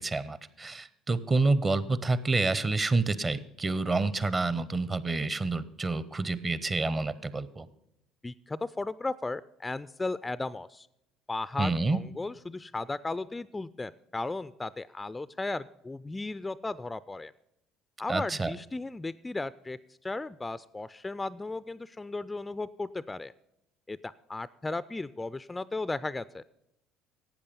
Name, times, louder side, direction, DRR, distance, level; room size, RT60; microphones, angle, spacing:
voice 1, 0.0-7.7 11.6-12.0 18.1-18.5, right 3 dB, 30° right, 16 dB, 0.8 m, -28 dB
voice 2, 8.2-10.9 11.3-17.3 18.0-23.3 23.9-26.4, left 3 dB, 15° left, 17 dB, 0.3 m, -35 dB
12.0 x 8.5 x 5.3 m, 0.82 s
hypercardioid pair, 60°, 0 cm